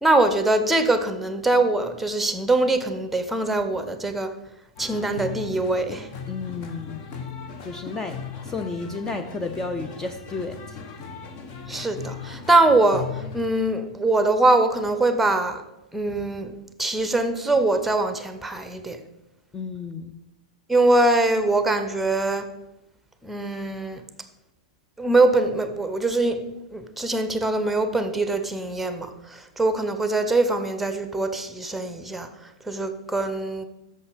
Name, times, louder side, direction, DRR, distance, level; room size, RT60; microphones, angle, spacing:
voice 1, 0.0-4.3 4.8-6.1 11.7-15.6 15.9-19.0 20.7-22.5 23.2-24.0 25.0-33.6, right 2 dB, 5° right, 9 dB, 0.9 m, -23 dB
sound 1, 4.8-13.7, left 5 dB, 40° left, 1.2 m, -38 dB
voice 2, 6.3-7.0 7.6-10.8 19.5-20.2, left 3 dB, 15° left, 7 dB, 0.6 m, -32 dB
8.5 x 6.6 x 5.3 m, 0.97 s
figure-of-eight pair, 100°, 3 cm